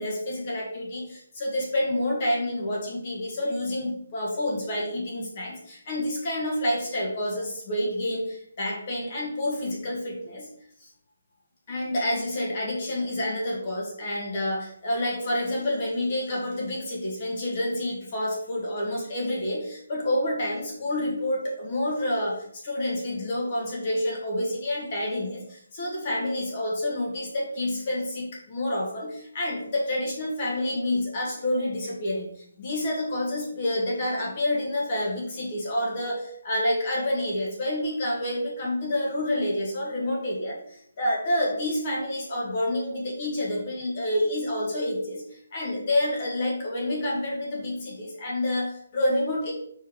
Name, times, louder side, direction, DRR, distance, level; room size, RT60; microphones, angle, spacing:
voice 1, 0.0-10.5 10.8-10.9 11.7-49.5, left 1 dB, 25° left, -3 dB, 1.5 m, -28 dB
5.0 x 4.5 x 6.1 m, 0.67 s
hypercardioid pair, 180°, 0 cm